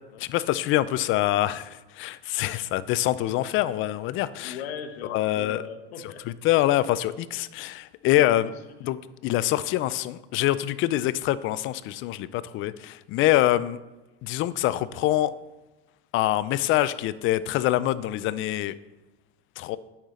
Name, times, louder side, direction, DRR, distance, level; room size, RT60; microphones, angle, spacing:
voice 1, 0.2-4.6 5.1-5.6 6.4-8.5 8.8-9.0 9.2-13.8 14.2-15.3 16.1-18.8 19.6-19.8, left 14 dB, 40° left, 17 dB, 0.4 m, -25 dB
voice 2, 4.4-6.2 8.2-9.0, left 7 dB, 85° left, 5 dB, 0.9 m, -39 dB
8.6 x 5.8 x 3.7 m, 1.1 s
supercardioid pair, 105°, 31 cm